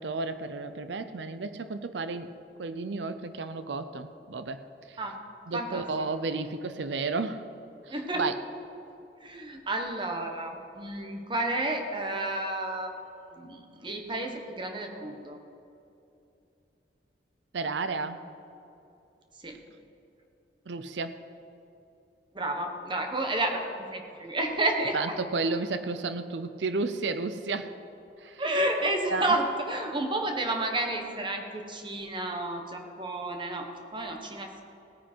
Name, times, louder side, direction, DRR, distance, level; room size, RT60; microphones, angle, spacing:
voice 1, 0.0-2.3 2.6-4.6 4.9-5.0 5.5-7.4 7.9-8.3 17.5-18.2 20.7-21.2 24.9-27.7 28.2-28.4 29.1-29.4, right 3 dB, 80° right, 11 dB, 0.6 m, -32 dB
voice 2, 5.5-6.1 7.9-8.3 9.2-12.9 13.4-15.4 19.4-19.6 22.3-23.6 23.9-25.1 28.4-34.6, right 2 dB, 25° right, 4 dB, 1.3 m, -31 dB
17.5 x 9.3 x 4.5 m, 2.7 s
head